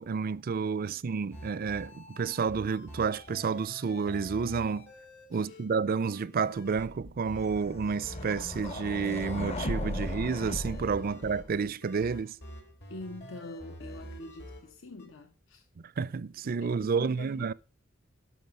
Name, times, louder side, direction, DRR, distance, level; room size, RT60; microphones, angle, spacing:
voice 1, 0.0-4.9 5.3-12.4 16.0-17.5, right 5 dB, 45° right, 0.4 m, -30 dB
sound 1, 1.3-5.8 6.0-7.0 7.2-7.6 8.0-15.1, equal, 55° left, 3.0 m, -47 dB
sound 2, 6.8-11.7, left 1 dB, 30° left, 0.8 m, -37 dB
voice 2, 12.9-15.7 16.6-17.5, left 2 dB, 75° left, 1.0 m, -45 dB
13.0 x 6.1 x 5.3 m
head